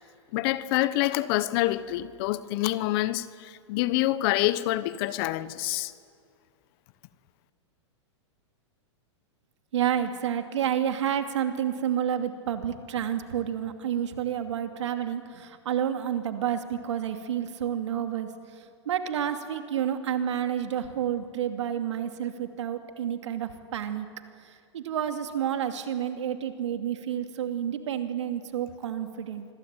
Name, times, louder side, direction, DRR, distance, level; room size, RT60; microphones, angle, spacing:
voice 1, 0.3-5.9, left 16 dB, 50° left, 1.2 m, -27 dB
voice 2, 9.7-24.1 24.4-29.5, right 9 dB, 75° right, 2.6 m, -30 dB
26.0 x 21.5 x 9.1 m
hypercardioid pair, 115°, 15 cm